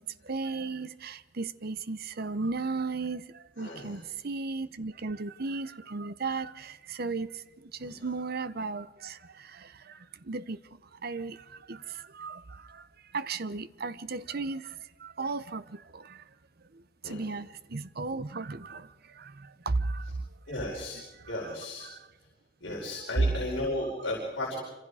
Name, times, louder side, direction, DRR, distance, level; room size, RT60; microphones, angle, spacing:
voice 1, 0.2-7.3 7.8-10.0 10.3-10.6 11.0-12.8 13.1-16.2 17.0-18.9 19.2-20.1 21.4-21.5 21.8-22.0 22.7-22.8, right 3 dB, 55° right, 0.8 m, -35 dB
voice 2, 3.6-4.0 7.8-7.9 17.0-17.2 20.5-21.9 22.6-24.6, left 1 dB, 65° left, 4.8 m, -35 dB
27.0 x 26.0 x 4.9 m
head